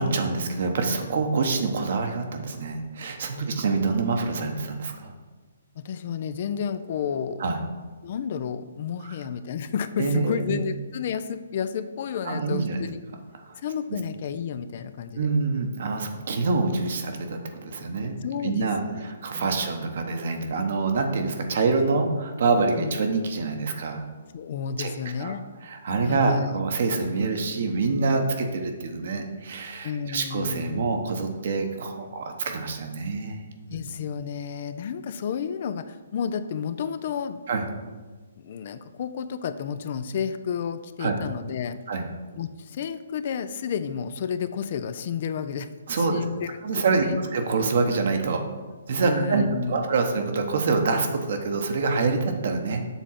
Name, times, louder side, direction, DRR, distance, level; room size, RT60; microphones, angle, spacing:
voice 1, 0.0-5.1 7.4-7.6 9.0-9.2 10.0-10.6 12.2-12.8 13.4-13.6 15.1-18.1 18.4-24.0 24.8-24.9 25.2-25.4 25.6-33.4 33.7-33.8 37.5-37.6 41.0-41.1 41.9-42.0 45.9-46.2 46.6-48.4 48.9-52.9, right 4 dB, 60° right, 4 dB, 1.0 m, -26 dB
voice 2, 5.8-7.4 8.0-13.0 13.6-15.3 18.2-19.0 19.3-19.7 22.8-23.0 24.3-25.4 26.0-26.5 29.8-30.8 33.7-37.4 38.4-41.8 42.4-45.7 46.0-47.2 49.0-49.8, left 7 dB, 50° left, 12 dB, 0.4 m, -31 dB
7.1 x 3.6 x 5.7 m, 1.3 s
hypercardioid pair, 140°, 0 cm